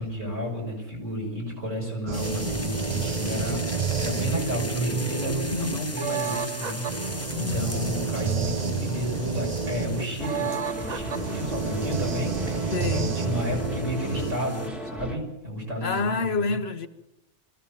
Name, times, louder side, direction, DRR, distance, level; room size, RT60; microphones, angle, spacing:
voice 1, 0.0-3.6 4.0-16.5, equal, 75° right, 6.6 m, -32 dB
sound 1, 2.1-14.7, left 2 dB, 15° left, 0.7 m, -39 dB
sound 2, 2.1-14.3, right 5 dB, 40° right, 0.8 m, -30 dB
voice 2, 5.5-5.9 7.3-7.9 12.7-13.1 15.8-16.9, left 4 dB, 55° left, 1.2 m, -28 dB
sound 3, 10.2-15.2, right 1 dB, ahead, 1.5 m, -36 dB
22.5 x 15.5 x 7.4 m
omnidirectional pair, 1.3 m